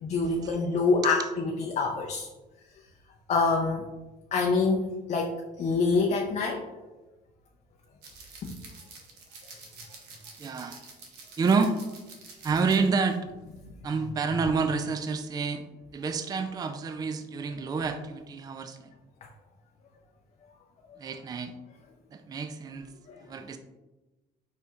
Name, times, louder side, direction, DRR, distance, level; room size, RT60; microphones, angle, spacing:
voice 1, 0.0-2.3 2.7-2.8 3.3-3.9 4.3-6.7 8.4-8.6 9.4-9.7 13.6-13.7 19.2-19.3 20.9-21.0 23.1-23.3, left 4 dB, 40° left, 1 dB, 0.5 m, -27 dB
sound 1, 8.0-13.2 13.5-13.7, right 4 dB, 85° right, 1.0 m, -49 dB
voice 2, 10.4-10.8 11.4-11.8 12.4-13.3 13.8-15.7 15.9-18.9 21.0-21.5 22.1-22.9 23.2-23.6, right 4 dB, 25° right, 8 dB, 0.3 m, -28 dB
5.1 x 4.3 x 2.4 m, 1.1 s
cardioid pair, 110°, 17 cm